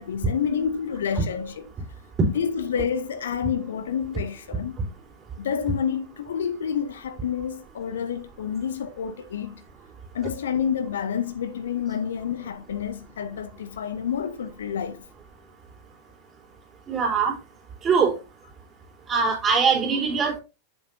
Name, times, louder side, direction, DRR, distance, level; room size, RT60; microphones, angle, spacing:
voice 1, 0.0-1.7 2.4-4.7 5.4-9.6 10.1-15.0, left 7 dB, 65° left, 0.7 m, -29 dB
voice 2, 16.9-17.3 17.8-18.2 19.1-20.4, right 5 dB, 25° right, 3.6 m, -22 dB
8.0 x 7.3 x 2.7 m
figure-of-eight pair, 90°, 0 cm